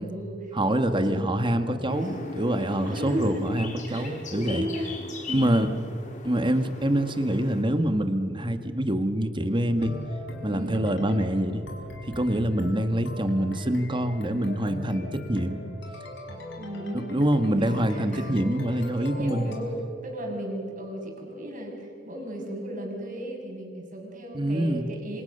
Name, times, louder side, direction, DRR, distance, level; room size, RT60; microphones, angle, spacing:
voice 1, 0.0-0.6 0.9-1.6 1.9-2.2 2.8-3.5 3.9-5.8 10.5-10.8 15.4-15.7 16.6-17.1 17.6-25.2, right 1 dB, 45° right, 0 dB, 6.6 m, -35 dB
voice 2, 0.5-4.7 5.3-5.7 6.2-9.9 10.4-11.6 12.0-15.6 16.9-19.5 24.3-24.9, right 1 dB, 25° right, 8 dB, 1.7 m, -25 dB
sound 1, 1.9-7.6, left 2 dB, 40° left, 4.0 m, -39 dB
sound 2, 9.8-19.6, left 1 dB, 65° left, 5.1 m, -41 dB
28.5 x 26.5 x 6.8 m, 2.5 s
head